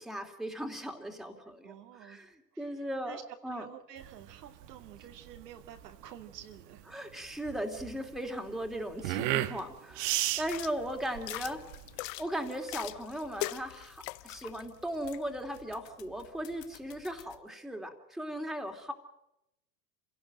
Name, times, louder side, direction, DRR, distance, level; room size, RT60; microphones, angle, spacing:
voice 1, 0.0-1.7 2.0-2.3 2.6-3.7 6.9-11.6 12.2-18.9, equal, ahead, 3 dB, 2.9 m, -37 dB
voice 2, 1.6-2.3 2.5-6.9, right 10 dB, 70° right, 4 dB, 3.0 m, -50 dB
sound 1, 4.0-12.0, right 15 dB, 50° right, 1.4 m, -35 dB
sound 2, 10.4-17.4, left 19 dB, 55° left, 0.9 m, -43 dB
26.5 x 17.5 x 7.8 m, 0.85 s
hypercardioid pair, 110°, 49 cm